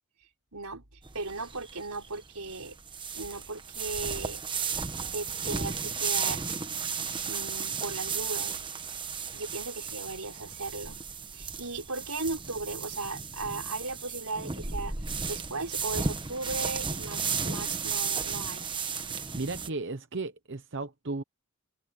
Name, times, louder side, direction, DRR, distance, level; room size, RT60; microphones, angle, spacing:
voice 1, 0.5-0.8 1.1-2.8 3.1-4.4 5.1-6.4 7.2-8.6 9.3-11.0 11.3-14.9 15.3-18.7, right 3 dB, 85° right, 4.8 m, -37 dB
sound 1, 1.0-19.7, right 5 dB, 20° right, 1.2 m, -34 dB
voice 2, 19.4-21.2, right 3 dB, 55° right, 0.9 m, -35 dB
head